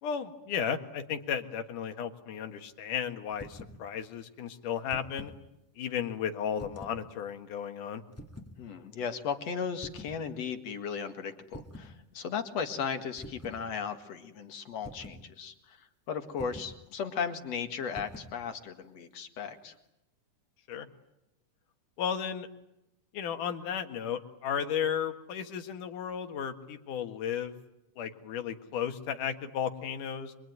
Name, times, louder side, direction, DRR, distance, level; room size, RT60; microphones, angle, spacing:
voice 1, 0.0-5.3 5.8-8.0 20.7-20.9 22.0-22.5 23.1-27.5 28.0-30.3, left 8 dB, 90° left, 7 dB, 3.2 m, -34 dB
sound 1, 3.3-3.8 4.7-5.4 6.6-7.0 8.1-8.6 9.8-10.2 11.5-12.0 13.2-13.6 14.8-15.3 16.4-16.8 17.9-18.4, equal, 5° left, 1.2 m, -46 dB
voice 2, 8.6-19.7, left 6 dB, 60° left, 7 dB, 2.9 m, -36 dB
26.0 x 23.0 x 9.4 m, 0.88 s
omnidirectional pair, 3.5 m